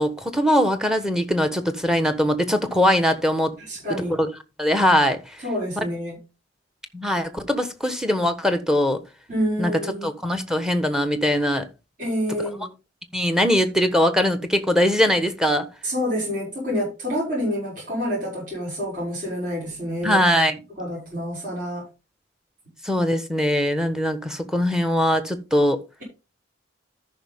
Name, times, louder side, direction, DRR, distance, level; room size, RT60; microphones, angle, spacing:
voice 1, 0.0-3.5 4.2-4.3 4.6-5.2 6.9-9.0 9.6-9.7 10.0-11.6 12.4-12.5 13.1-15.7 20.0-20.6 22.8-25.8, equal, 5° right, 1.2 m, -21 dB
voice 2, 3.7-4.2 5.4-6.2 9.3-10.1 12.0-12.7 15.8-20.2 20.8-21.8, equal, 45° right, 6.3 m, -27 dB
13.5 x 5.8 x 3.6 m
head